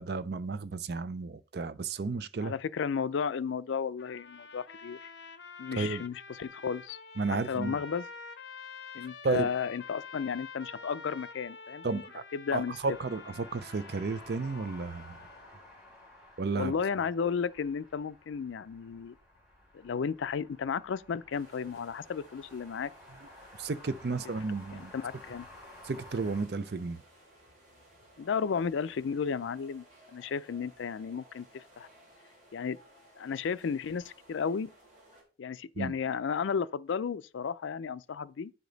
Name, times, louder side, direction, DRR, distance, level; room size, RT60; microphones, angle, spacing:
voice 1, 0.0-2.5 5.7-6.0 7.2-7.8 9.2-9.5 11.8-12.2 12.5-15.2 16.4-16.7 23.6-24.9 25.8-27.0 35.8-35.9, right 4 dB, 55° right, 0.5 m, -32 dB
voice 2, 2.4-5.1 5.6-7.0 7.5-8.1 8.9-12.0 12.3-13.0 16.5-19.2 19.7-22.9 24.5-25.5 28.2-29.8 30.1-31.9 32.5-32.8 33.2-34.7 35.4-38.5, left 6 dB, 75° left, 0.4 m, -33 dB
sound 1, 4.0-15.5, left 4 dB, 60° left, 0.8 m, -48 dB
sound 2, 12.7-26.4, left 1 dB, 15° right, 4.1 m, -53 dB
sound 3, 21.3-35.2, right 1 dB, 40° right, 4.0 m, -59 dB
9.7 x 5.1 x 3.9 m
head